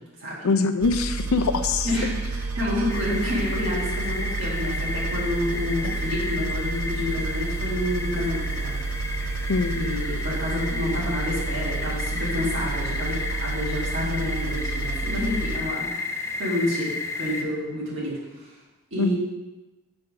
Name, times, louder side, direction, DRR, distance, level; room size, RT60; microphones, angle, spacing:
voice 1, 0.4-1.9 5.8-6.0 9.5-9.8 19.0-19.1, left 4 dB, 80° left, 9 dB, 0.5 m, -23 dB
sound 1, 0.8-15.6, right 3 dB, 85° right, 0.6 m, -30 dB
sound 2, 1.0-11.7, equal, 40° right, 2.1 m, -44 dB
voice 2, 1.8-8.7 9.7-18.1 18.9-19.1, left 1 dB, 60° right, -7 dB, 2.2 m, -29 dB
sound 3, 2.9-17.4, left 3 dB, 15° left, 0.4 m, -33 dB
6.2 x 4.3 x 4.9 m, 1.1 s
head